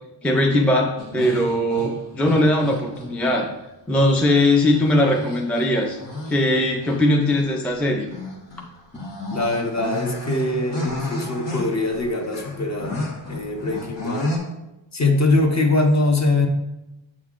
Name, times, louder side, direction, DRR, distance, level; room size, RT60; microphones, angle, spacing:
voice 1, 0.2-3.5 3.9-6.0 6.3-8.1 8.9-9.0, left 1 dB, 5° left, 1 dB, 0.4 m, -20 dB
sound 1, 1.0-3.4 4.1-7.0 7.3-7.4 8.1-14.4, left 2 dB, 60° left, 1.3 m, -33 dB
voice 2, 9.3-13.0 13.3-14.3 14.9-16.5, left 2 dB, 35° left, 3 dB, 0.8 m, -22 dB
7.2 x 5.5 x 2.4 m, 0.96 s
wide cardioid pair, 140°, 48 cm